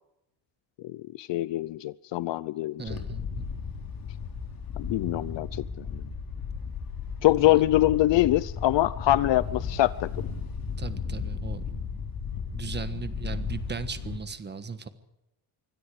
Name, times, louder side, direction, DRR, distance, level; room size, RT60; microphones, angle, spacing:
voice 1, 0.8-3.0 4.8-6.0 7.2-10.1, left 15 dB, 65° left, 17 dB, 0.7 m, -24 dB
voice 2, 2.8-3.5 7.6-7.7 10.8-12.0 12.5-14.9, right 5 dB, 20° right, 11 dB, 1.4 m, -37 dB
Wind, 2.9-14.2, left 6 dB, 45° left, 4.1 m, -35 dB
25.5 x 24.5 x 5.0 m, 0.89 s
cardioid pair, 175°, 47 cm